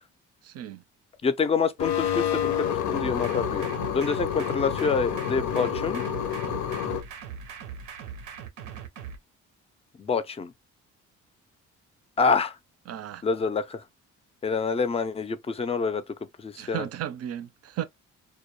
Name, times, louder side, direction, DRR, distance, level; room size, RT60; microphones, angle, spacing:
voice 1, 0.4-0.8 12.9-13.2 16.6-17.8, right 11 dB, 55° right, 0.5 m, -34 dB
voice 2, 1.2-6.0 10.0-10.5 12.2-12.5 13.2-13.8 14.4-16.0 16.4-16.9, left 5 dB, 20° left, 0.4 m, -27 dB
sound 1, 1.8-7.0, left 9 dB, 75° left, 0.6 m, -28 dB
sound 2, 3.0-9.2, right 6 dB, 90° right, 0.7 m, -40 dB
2.2 x 2.2 x 2.9 m
cardioid pair, 90°, 30 cm